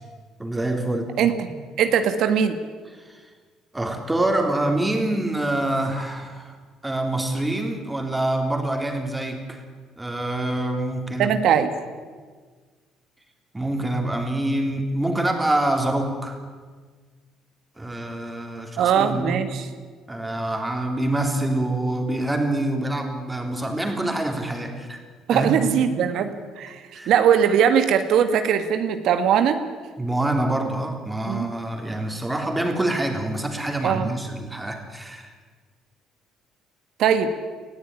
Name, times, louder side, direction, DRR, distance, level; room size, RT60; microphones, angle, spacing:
voice 1, 0.4-1.1 1.5-1.6 3.0-3.2 3.7-6.5 6.8-9.6 10.0-11.4 13.5-16.4 17.8-19.4 20.1-25.0 25.3-25.5 26.0-26.1 26.9-27.1 30.0-35.3, right 1 dB, 10° right, 4 dB, 3.5 m, -26 dB
voice 2, 1.8-2.6 11.2-11.7 18.8-19.6 25.3-26.8 27.1-29.6 31.3-31.5 33.8-34.1 37.0-37.3, right 8 dB, 70° right, 8 dB, 1.7 m, -20 dB
20.0 x 14.5 x 9.8 m, 1.5 s
cardioid pair, 105°, 0 cm